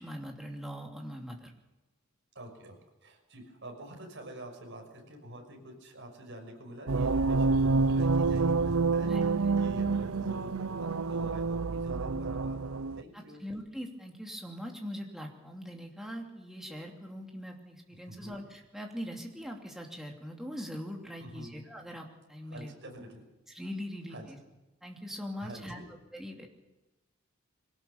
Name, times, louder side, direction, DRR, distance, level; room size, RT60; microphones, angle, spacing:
voice 1, 0.0-1.5 9.1-9.6 13.1-22.7 23.5-24.4 24.8-26.5, equal, ahead, 1 dB, 2.8 m, -42 dB
voice 2, 2.3-2.8 3.0-13.4 18.1-18.4 21.2-21.5 22.5-23.2 24.1-24.3 25.4-25.8, equal, 60° right, 2 dB, 6.0 m, -47 dB
sound 1, 6.9-13.0, right 4 dB, 85° right, 0.7 m, -28 dB
22.5 x 18.0 x 7.1 m, 1.1 s
head